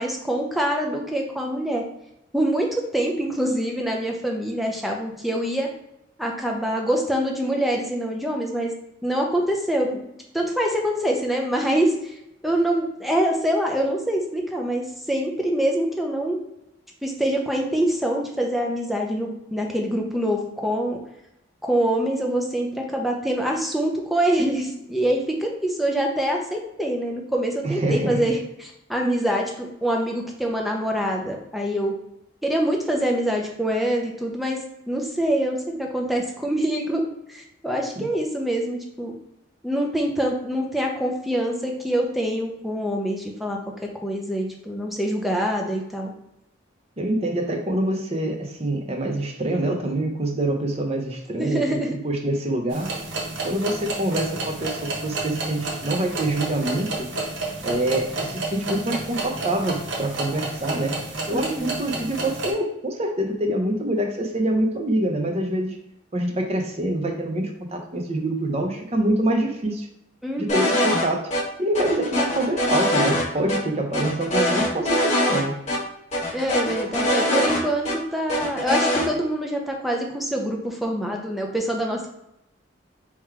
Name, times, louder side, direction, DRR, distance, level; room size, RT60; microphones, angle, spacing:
voice 1, 0.0-1.8 2.3-5.7 6.2-8.7 9.0-10.0 10.3-12.2 12.4-16.4 17.0-21.0 21.6-31.9 32.4-34.6 34.9-37.0 37.3-39.2 39.6-43.6 44.0-46.1 51.4-52.0 61.3-61.7 70.2-70.9 76.3-82.1, right 1 dB, ahead, 0 dB, 0.7 m, -25 dB
voice 2, 27.6-28.2 38.0-38.1 47.0-51.7 52.0-52.9 53.4-57.1 57.6-61.0 61.3-65.8 66.1-69.9 70.4-71.3 71.6-75.6, right 1 dB, 30° right, 3 dB, 0.7 m, -25 dB
sound 1, 52.7-62.5, right 3 dB, 75° right, 1.1 m, -31 dB
sound 2, 70.5-71.0 71.3-71.4 71.7-73.2 73.5-73.6 73.9-75.4 75.7-75.8 76.1-77.9 78.3-79.1, equal, 35° left, 1.2 m, -22 dB
3.8 x 3.0 x 4.5 m, 0.84 s
head